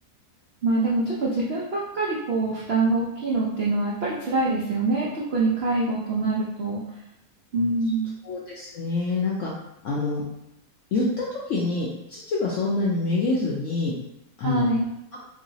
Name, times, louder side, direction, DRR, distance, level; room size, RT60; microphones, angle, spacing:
voice 1, 0.6-6.8 7.5-8.2 14.4-14.9, right 2 dB, 90° right, -6 dB, 0.5 m, -25 dB
voice 2, 8.2-9.5 9.8-10.2 10.9-13.9 14.4-14.7, left 3 dB, 75° left, -5 dB, 0.7 m, -26 dB
3.1 x 2.9 x 2.7 m, 0.83 s
omnidirectional pair, 1.9 m